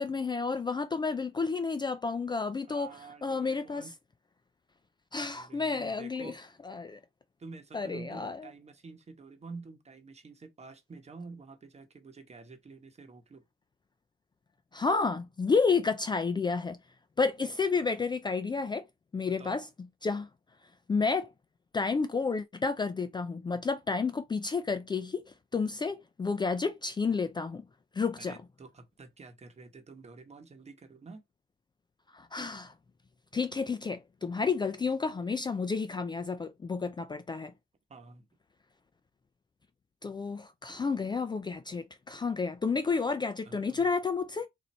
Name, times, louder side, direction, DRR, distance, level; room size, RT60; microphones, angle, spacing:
voice 1, 0.0-3.9 5.1-6.3 6.6-7.0 7.7-8.4 14.7-16.8 17.2-18.9 19.1-19.7 20.0-20.3 20.9-21.3 21.7-27.6 28.0-28.4 32.1-32.7 33.3-37.5 40.0-44.5, left 4 dB, 20° left, 0.4 m, -31 dB
voice 2, 2.7-3.9 5.3-6.3 7.4-13.4 19.3-19.6 28.2-31.2 37.9-38.3 43.4-43.9, right 4 dB, 35° right, 1.1 m, -49 dB
4.0 x 2.7 x 4.3 m
cardioid pair, 90°, 20 cm